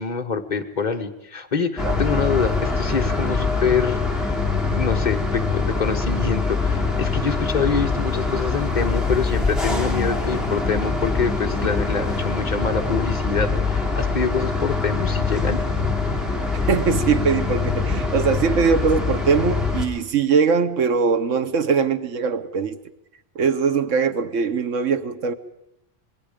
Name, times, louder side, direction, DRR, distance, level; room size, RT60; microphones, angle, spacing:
voice 1, 0.0-4.3 4.7-15.6, left 5 dB, 40° left, 1.4 m, -25 dB
sound 1, 1.8-19.8, left 4 dB, ahead, 3.1 m, -23 dB
voice 2, 16.5-22.8 23.3-25.3, right 5 dB, 90° right, 1.4 m, -21 dB
26.5 x 20.5 x 5.1 m
omnidirectional pair, 1.3 m